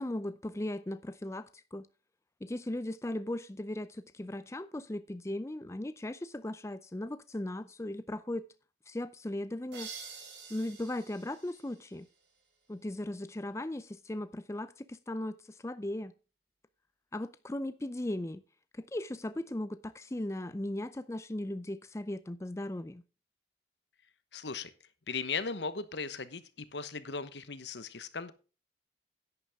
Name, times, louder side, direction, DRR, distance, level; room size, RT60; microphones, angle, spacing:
voice 1, 0.0-1.9 2.4-8.5 8.9-9.9 10.5-12.1 12.7-15.3 15.6-16.1 17.1-18.4 18.9-23.0, left 1 dB, 15° left, 0.4 m, -37 dB
sound 1, 9.7-12.4, right 5 dB, 85° right, 4.3 m, -48 dB
voice 2, 24.3-24.7 25.1-26.4 26.7-28.3, left 4 dB, 80° left, 1.2 m, -37 dB
11.0 x 9.8 x 3.6 m
head